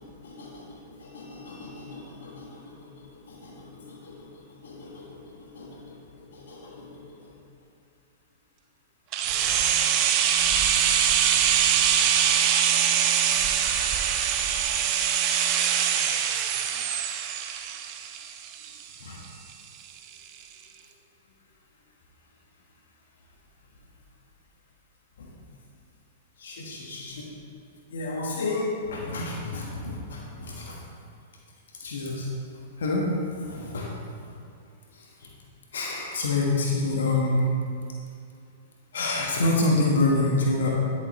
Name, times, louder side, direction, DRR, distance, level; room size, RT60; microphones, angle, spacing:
voice 1, 0.0-4.3 4.6-7.2 19.0-19.2 25.2-25.3 26.4-27.3 27.9-30.8 31.8-32.3 32.8-34.2 35.7-37.5 38.9-40.8, left 2 dB, 75° left, -2 dB, 1.4 m, -29 dB
sound 1, 9.1-19.0 19.2-19.3, right 9 dB, 40° right, 0.7 m, -23 dB
12.5 x 6.8 x 3.1 m, 2.5 s
hypercardioid pair, 105°, 0 cm